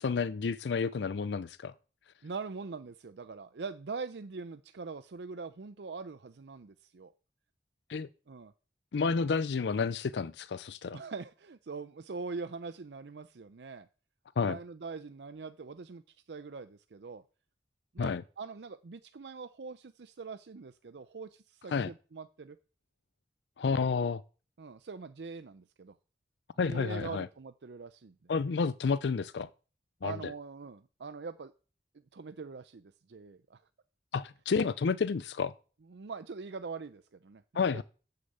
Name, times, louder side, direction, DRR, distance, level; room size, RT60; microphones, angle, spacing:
voice 1, 0.0-1.7 7.9-8.1 8.9-11.0 14.4-14.6 18.0-18.2 21.7-21.9 23.6-24.2 26.6-27.3 28.3-29.5 30.0-30.2 34.1-35.5 37.5-37.8, left 5 dB, 75° left, 0.4 m, -30 dB
voice 2, 2.2-7.1 8.3-8.5 10.9-13.9 14.4-17.2 17.9-22.6 24.6-26.0 26.7-28.3 30.0-31.5 32.1-33.6 35.9-37.8, right 4 dB, 70° right, 0.5 m, -43 dB
11.0 x 6.7 x 7.9 m
head